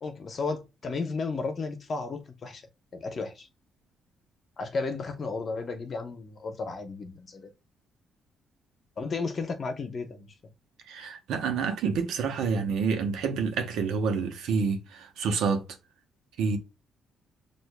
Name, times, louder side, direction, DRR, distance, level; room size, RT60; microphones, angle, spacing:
voice 1, 0.0-2.6 2.9-3.5 4.6-7.5 9.0-10.3, left 4 dB, 45° left, 0.9 m, -33 dB
voice 2, 10.9-15.6 16.4-16.6, right 5 dB, 85° right, 0.9 m, -28 dB
6.3 x 2.5 x 2.3 m
cardioid pair, 90°, 0 cm